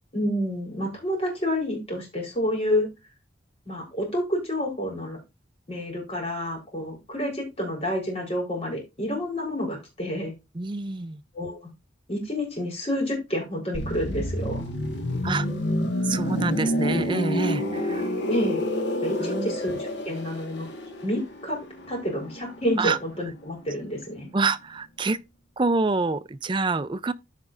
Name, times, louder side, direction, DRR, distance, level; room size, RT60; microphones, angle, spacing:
voice 1, 0.1-2.9 3.7-5.2 5.7-10.3 11.3-11.6 12.1-14.7 18.3-18.6 19.0-20.7 21.0-24.3, equal, 30° left, 4.1 m, -29 dB
voice 2, 10.5-11.2 15.2-15.5 16.0-18.1 19.2-19.5 22.8-23.0 24.3-25.2 25.6-27.1, right 3 dB, 25° right, 0.4 m, -26 dB
sound 1, 13.7-23.4 23.7-23.9, left 1 dB, 60° left, 1.6 m, -29 dB
14.0 x 5.3 x 2.5 m
head